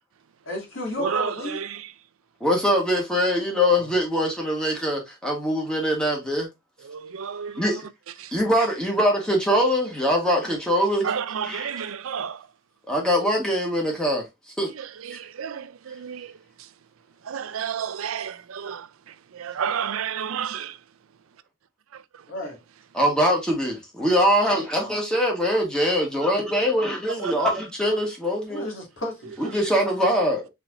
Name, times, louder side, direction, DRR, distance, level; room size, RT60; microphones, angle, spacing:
voice 1, 0.4-1.6 3.7-3.9 22.3-22.6 28.5-29.3, left 2 dB, 65° left, 2.3 m, -32 dB
voice 2, 1.0-1.9 6.8-7.8 8.2-8.3 11.0-12.5 14.7-16.7 17.2-20.8 21.9-22.3 27.2-27.3, right 7 dB, 80° right, 0.5 m, -31 dB
voice 3, 2.4-6.5 7.5-7.8 8.3-11.1 11.5-11.7 12.9-14.3 14.6-14.7 15.1-15.2 22.9-28.7 29.4-30.5, equal, 5° left, 1.4 m, -23 dB
4.3 x 4.2 x 2.6 m
head